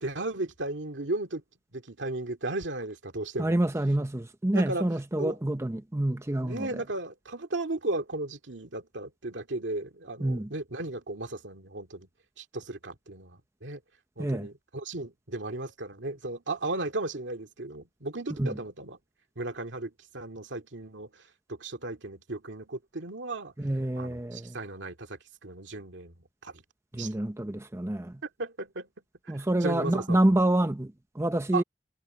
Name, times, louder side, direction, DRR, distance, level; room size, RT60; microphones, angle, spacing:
voice 1, 0.0-1.4 1.7-3.5 4.5-4.8 5.2-5.4 6.4-12.1 12.4-13.8 14.2-19.0 19.4-21.1 21.5-23.5 24.0-26.1 26.4-26.5 26.9-27.1 28.2-28.9 29.6-30.2 31.5-31.6, right 2 dB, 75° right, 2.3 m, -35 dB
voice 2, 3.4-6.8 10.2-10.5 14.2-14.5 18.4-18.6 23.6-24.6 26.9-28.2 29.3-31.6, right 1 dB, 15° right, 0.7 m, -27 dB
head